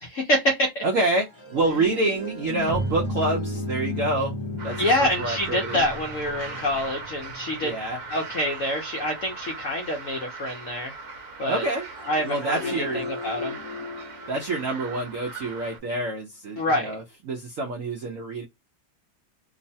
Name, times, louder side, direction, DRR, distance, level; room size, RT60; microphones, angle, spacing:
voice 1, 0.0-0.8 4.8-7.8 8.1-10.9 11.4-11.7 12.1-13.6 16.6-16.9, left 1 dB, 65° left, 0.8 m, -26 dB
voice 2, 0.8-4.4 4.6-5.9 7.6-8.0 11.5-11.9 12.2-13.1 14.3-18.4, right 2 dB, 75° right, 0.7 m, -27 dB
sound 1, 0.9-8.5 11.7-15.8, left 5 dB, 25° left, 0.6 m, -37 dB
Keyboard (musical), 2.7-7.2, right 4 dB, 15° right, 0.8 m, -35 dB
sound 2, 4.6-15.8, right 4 dB, 55° right, 1.1 m, -39 dB
3.0 x 2.1 x 2.6 m
omnidirectional pair, 2.0 m